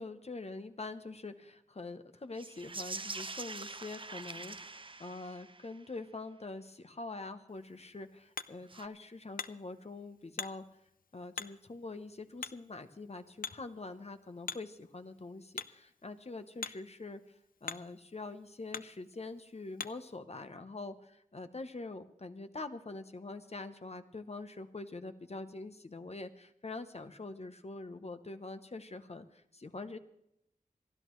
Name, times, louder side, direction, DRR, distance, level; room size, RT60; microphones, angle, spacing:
voice 1, 0.0-10.7 11.1-30.0, left 3 dB, 50° left, 9 dB, 0.9 m, -44 dB
sound 1, 2.3-5.8 8.6-8.9, right 3 dB, 35° right, 0.6 m, -44 dB
Hammer, 7.5-20.2, left 6 dB, 80° left, 0.5 m, -47 dB
28.5 x 11.0 x 3.1 m, 0.79 s
wide cardioid pair, 65°, 14 cm